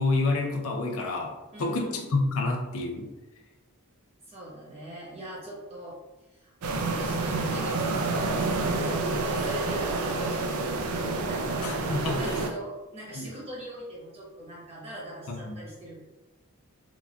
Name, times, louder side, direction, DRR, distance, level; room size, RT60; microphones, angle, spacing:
voice 1, 0.0-1.3 1.6-3.1 11.6-12.4 13.1-13.3 15.3-15.6, left 3 dB, 65° left, 1 dB, 0.5 m, -28 dB
voice 2, 1.5-2.1 4.3-6.0 6.3-6.5 6.8-10.8 11.3-11.7 12.0-16.0, right 1 dB, 25° right, -6 dB, 1.0 m, -42 dB
sound 1, 6.6-12.5, right 3 dB, 75° right, 0.4 m, -28 dB
3.9 x 2.2 x 2.3 m, 1.1 s
head